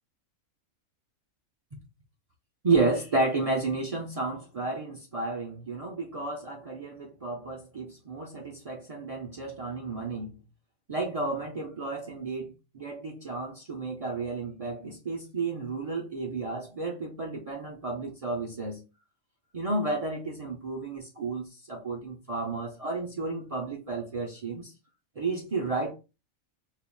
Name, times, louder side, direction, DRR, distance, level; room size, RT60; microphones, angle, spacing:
voice 1, 2.6-10.4 10.9-18.8 19.5-24.7 25.2-25.9, right 3 dB, 70° right, 0.3 m, -32 dB
5.5 x 2.4 x 2.2 m
omnidirectional pair, 1.5 m